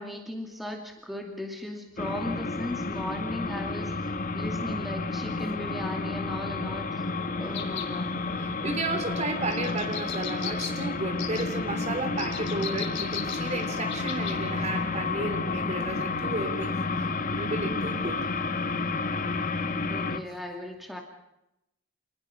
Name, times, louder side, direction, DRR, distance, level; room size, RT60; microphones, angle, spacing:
voice 1, 0.0-7.0 7.4-8.2 19.9-21.0, left 1 dB, ahead, 2 dB, 2.5 m, -37 dB
sound 1, 2.0-20.2, left 3 dB, 40° left, 1.1 m, -31 dB
voice 2, 7.0-7.5 8.3-18.2, right 2 dB, 35° right, 7 dB, 3.4 m, -33 dB
sound 2, 7.5-7.9 9.5-10.7 11.2-11.4 12.2-14.4 14.7-14.8, left 9 dB, 65° left, 4.4 m, -37 dB
28.0 x 20.0 x 6.0 m, 0.87 s
head